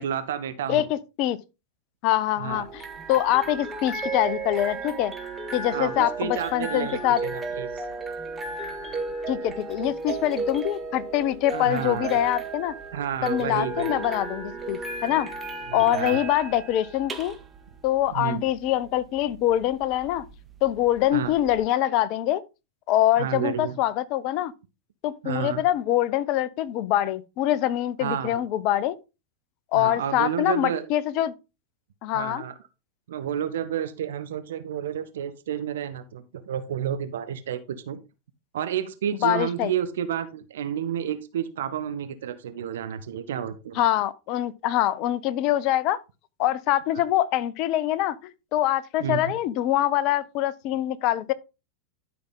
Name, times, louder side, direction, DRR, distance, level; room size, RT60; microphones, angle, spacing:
voice 1, 0.0-0.8 2.4-2.6 5.7-7.8 11.5-12.2 12.9-14.1 15.7-16.2 18.1-18.4 21.1-21.3 23.2-23.8 25.2-25.6 28.0-28.4 29.7-30.9 32.1-32.5 33.1-38.0 38.5-43.8 46.9-47.0 49.0-49.3, right 9 dB, 60° right, 0.9 m, -30 dB
voice 2, 0.7-1.4 2.0-2.8 3.1-5.1 5.5-7.2 9.3-12.7 13.2-15.3 15.7-17.4 17.8-20.3 20.6-22.4 22.9-24.5 25.0-28.9 29.7-31.3 32.0-32.4 39.2-39.7 43.7-46.0 46.4-51.3, left 13 dB, 40° left, 0.7 m, -24 dB
sound 1, 2.5-21.6, right 3 dB, 15° right, 1.7 m, -34 dB
12.0 x 5.9 x 3.8 m
figure-of-eight pair, 90°, 0 cm